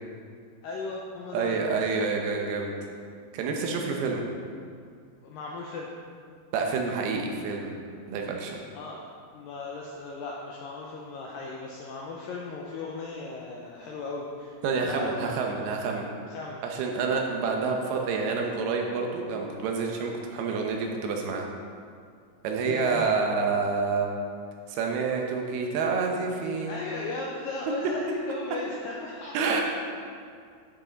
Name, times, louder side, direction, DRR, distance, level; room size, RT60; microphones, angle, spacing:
voice 1, 0.6-1.6 5.2-5.9 8.7-9.0 9.3-15.2 16.3-16.6 22.7-23.0 26.7-29.6, left 3 dB, 85° left, -2 dB, 2.0 m, -36 dB
voice 2, 1.3-2.7 3.3-4.2 6.5-7.8 8.1-8.6 14.6-16.1 16.6-21.5 22.4-24.1 24.7-26.8 29.3-29.6, right 4 dB, 75° right, 1 dB, 2.6 m, -28 dB
11.5 x 6.1 x 4.0 m, 2.2 s
omnidirectional pair, 4.8 m